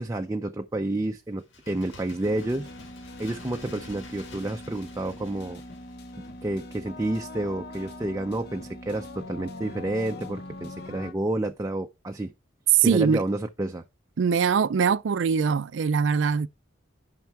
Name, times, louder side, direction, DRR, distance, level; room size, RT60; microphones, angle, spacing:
voice 1, 0.0-2.7 3.2-5.6 6.2-12.3 12.8-13.8, right 1 dB, 15° right, 0.4 m, -30 dB
Bird, 1.4-6.9 7.2-7.3, left 3 dB, 85° left, 1.6 m, -49 dB
sound 1, 2.2-11.1, left 2 dB, 60° left, 1.0 m, -42 dB
voice 2, 12.7-13.2 14.2-16.5, right 6 dB, 75° right, 0.4 m, -22 dB
9.2 x 5.5 x 4.5 m
head